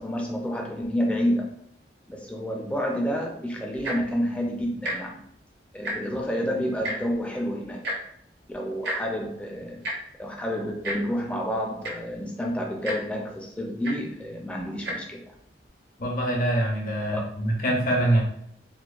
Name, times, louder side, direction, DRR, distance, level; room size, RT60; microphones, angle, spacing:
voice 1, 0.0-1.5 2.1-5.2 5.7-7.8 8.5-9.8 10.2-15.2 17.1-17.2, equal, 5° left, 0 dB, 0.4 m, -29 dB
Tick-tock, 3.7-4.1 4.8-5.0 5.3-5.4 5.7-6.2 6.8-7.0 7.8-8.0 8.8-9.0 9.8-9.9 10.8-11.0 11.5-11.6 11.8-12.1 12.8-13.0 13.8-14.0 14.7-14.9 15.7-15.8, right 1 dB, 65° right, 0.6 m, -30 dB
voice 2, 16.0-18.2, right 1 dB, 50° left, -2 dB, 0.6 m, -24 dB
2.8 x 2.2 x 2.3 m, 0.70 s
head